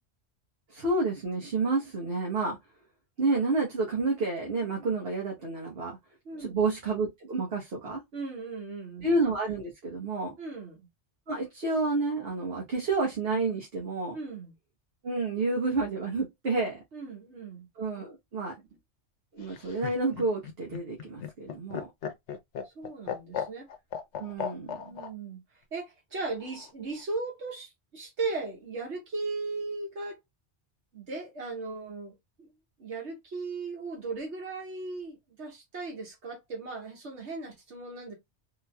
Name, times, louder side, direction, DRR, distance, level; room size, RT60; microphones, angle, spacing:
voice 1, 0.7-2.6 3.2-6.0 6.3-8.0 9.0-10.3 11.3-14.2 15.0-16.8 17.8-18.5 19.3-21.9 24.2-25.0, right 3 dB, 60° right, 1.3 m, -29 dB
voice 2, 6.2-6.6 8.1-9.0 10.4-10.9 14.1-14.5 16.9-17.7 22.6-23.7 24.8-25.4 25.7-30.2 30.9-32.5 32.8-38.1, right 3 dB, 80° right, 1.5 m, -37 dB
Laughter, 19.4-25.1 26.4-27.0, left 8 dB, 85° left, 1.0 m, -36 dB
3.6 x 2.8 x 2.2 m
omnidirectional pair, 1.2 m